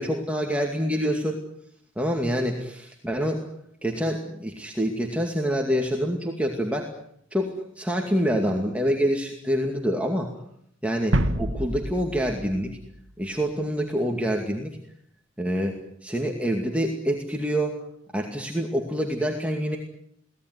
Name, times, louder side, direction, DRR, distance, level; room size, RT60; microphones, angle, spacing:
voice 1, 0.0-1.4 2.0-3.5 3.8-6.9 7.3-10.3 10.8-12.7 13.2-14.7 15.4-17.7 18.1-19.8, equal, 5° right, 1 dB, 2.3 m, -26 dB
sound 1, 11.1-13.6, right 1 dB, 90° right, 1.6 m, -28 dB
23.5 x 18.0 x 9.8 m, 0.71 s
head